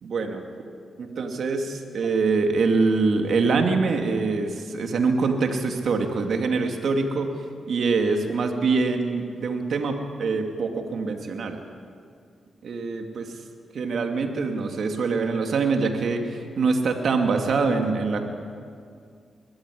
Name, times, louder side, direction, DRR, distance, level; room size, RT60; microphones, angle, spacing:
voice 1, 0.0-0.4 1.0-7.3 7.7-11.6 12.6-13.3 13.7-18.2, right 4 dB, 70° right, 4 dB, 2.5 m, -24 dB
21.5 x 14.5 x 10.0 m, 2.2 s
cardioid pair, 75°, 0 cm